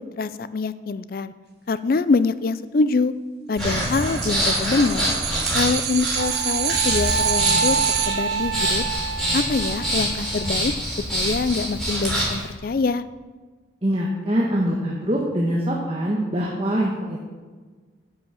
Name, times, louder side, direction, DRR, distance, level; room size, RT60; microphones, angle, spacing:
voice 1, 0.0-1.3 1.7-3.1 3.5-5.1 5.5-7.8 8.1-8.8 9.3-10.7 11.1-13.0, left 4 dB, 50° left, 15 dB, 0.4 m, -24 dB
Breathing, 3.6-12.4, equal, ahead, 3.7 m, -26 dB
sound 1, 3.6-8.1, right 10 dB, 55° right, 0.9 m, -27 dB
Wind instrument woodwind instrument, 6.2-10.5, right 5 dB, 85° right, 0.6 m, -28 dB
voice 2, 13.8-17.3, equal, 30° right, -3 dB, 1.2 m, -24 dB
10.0 x 6.2 x 7.2 m, 1.4 s
head